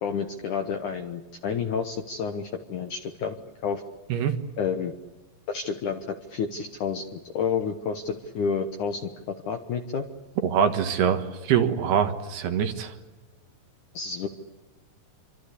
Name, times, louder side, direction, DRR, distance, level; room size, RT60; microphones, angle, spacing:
voice 1, 0.0-3.4 3.6-3.8 4.6-4.9 5.5-10.1 13.9-14.3, left 6 dB, 65° left, 6 dB, 2.0 m, -30 dB
voice 2, 10.4-12.9, right 8 dB, 70° right, 7 dB, 3.3 m, -24 dB
27.5 x 25.0 x 8.4 m, 1.2 s
omnidirectional pair, 5.1 m